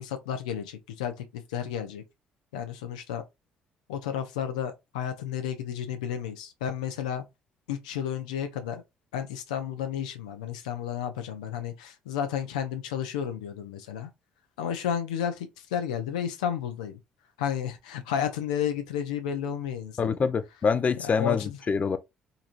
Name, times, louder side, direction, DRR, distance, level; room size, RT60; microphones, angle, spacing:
voice 1, 0.0-2.0 2.5-3.2 3.9-7.2 7.7-8.8 9.1-14.1 14.6-17.0 17.4-20.1 21.2-21.6, left 9 dB, 85° left, 0.5 m, -32 dB
voice 2, 20.0-22.0, left 5 dB, 40° left, 0.5 m, -25 dB
3.8 x 3.0 x 2.5 m
hypercardioid pair, 55°, 4 cm